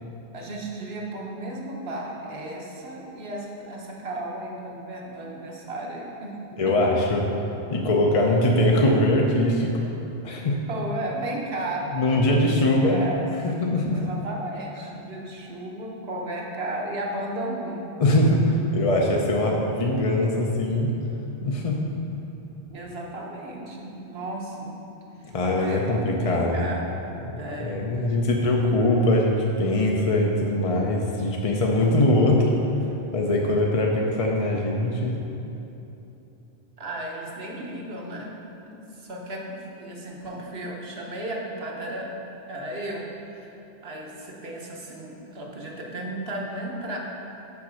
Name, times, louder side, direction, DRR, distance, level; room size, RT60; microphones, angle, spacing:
voice 1, 0.3-6.4 6.6-6.9 8.6-8.8 10.7-13.3 13.9-17.9 22.7-24.8 25.5-27.0 27.4-28.1 36.8-38.4 38.7-42.1 42.5-43.5 43.8-47.0, right 1 dB, 65° right, -1 dB, 1.3 m, -34 dB
voice 2, 6.6-7.3 7.7-9.8 10.2-10.7 11.9-13.0 13.6-14.0 18.0-20.9 21.4-22.0 25.3-26.7 27.3-32.5 33.1-35.2, left 1 dB, 40° left, -1 dB, 0.6 m, -22 dB
7.1 x 5.3 x 6.3 m, 3.0 s
omnidirectional pair, 1.1 m